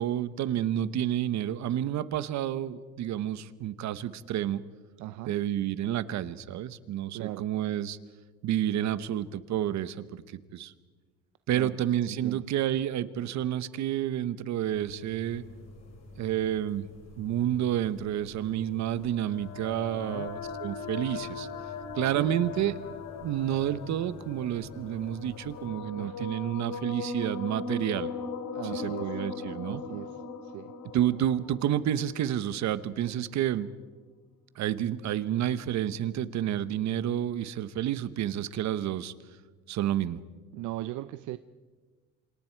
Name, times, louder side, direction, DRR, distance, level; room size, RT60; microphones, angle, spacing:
voice 1, 0.0-4.6 5.3-8.0 8.4-10.7 11.5-15.4 16.2-16.9 17.2-21.5 22.0-22.8 23.2-28.1 28.7-29.8 30.9-33.7 34.6-39.1 39.7-40.2, right 11 dB, 70° right, 14 dB, 1.1 m, -30 dB
voice 2, 5.0-5.3 7.1-7.4 11.5-11.7 12.1-12.4 19.9-20.3 22.2-22.3 26.0-26.3 28.5-29.1 29.6-30.1 30.4-30.7 40.5-41.4, right 16 dB, 85° right, 12 dB, 0.7 m, -38 dB
sound 1, 14.6-25.7, left 1 dB, 60° left, 7.9 m, -50 dB
sound 2, 18.6-32.7, left 4 dB, 85° left, 2.6 m, -39 dB
27.5 x 26.5 x 4.6 m, 1.4 s
cardioid pair, 105°, 29 cm